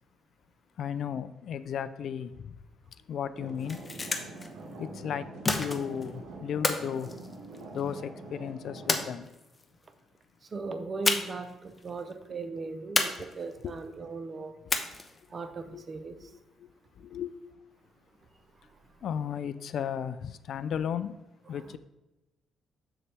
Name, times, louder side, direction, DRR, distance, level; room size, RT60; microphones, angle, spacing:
voice 1, 0.8-2.6 3.1-3.8 4.8-7.1 7.7-9.3 13.6-13.8 15.7-15.9 16.6-16.7 16.9-17.4 19.0-21.1 21.5-21.8, left 8 dB, 65° left, 0.4 m, -34 dB
sound 1, 3.3-9.1, right 2 dB, 75° right, 1.6 m, -45 dB
sound 2, 3.5-4.5 5.4-6.1 6.6-7.9 8.9-9.6 11.0-11.5 11.8-11.9 13.0-13.7 14.7-15.3, left 3 dB, 25° left, 0.9 m, -30 dB
voice 2, 10.4-14.6 15.3-16.3 18.5-18.8 21.5-21.7, right 3 dB, 40° right, 0.8 m, -38 dB
7.0 x 6.9 x 3.4 m
cardioid pair, 105°, 0 cm